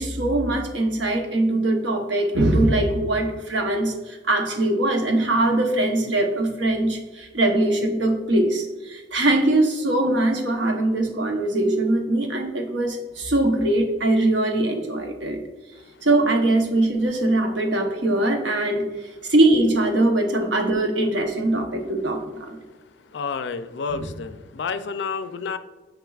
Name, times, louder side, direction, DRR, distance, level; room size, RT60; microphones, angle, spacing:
voice 1, 0.0-15.4 16.0-18.9 19.3-22.6 23.9-24.1, right 1 dB, 80° right, 3 dB, 0.9 m, -22 dB
voice 2, 23.1-25.6, left 5 dB, 70° left, 11 dB, 0.4 m, -30 dB
9.1 x 5.3 x 2.4 m, 1.3 s
head